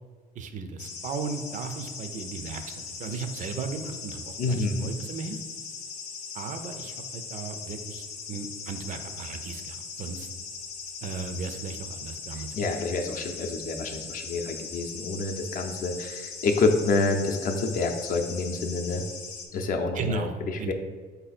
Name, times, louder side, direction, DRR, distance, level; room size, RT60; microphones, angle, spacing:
voice 1, 0.3-5.4 6.3-10.3 11.0-12.7 19.9-20.7, right 4 dB, 50° right, 8 dB, 0.4 m, -36 dB
sound 1, 0.8-19.5, left 5 dB, 85° left, 0.7 m, -39 dB
voice 2, 4.4-4.9 12.4-19.0 19.5-20.7, left 3 dB, 50° left, 4 dB, 0.5 m, -28 dB
4.1 x 2.7 x 4.1 m, 1.5 s
cardioid pair, 110°, 17 cm